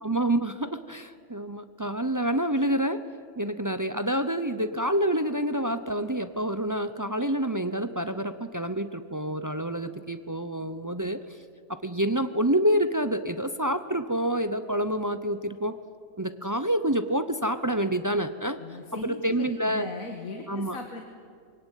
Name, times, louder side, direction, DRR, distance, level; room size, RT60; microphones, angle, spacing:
voice 1, 0.0-3.0 3.4-11.2 11.7-15.7 16.2-18.6 18.9-19.9 20.5-20.8, right 1 dB, 20° right, 10 dB, 0.5 m, -27 dB
voice 2, 18.6-21.0, left 3 dB, 90° left, 3 dB, 2.0 m, -38 dB
22.5 x 18.0 x 9.2 m, 2.2 s
omnidirectional pair, 1.4 m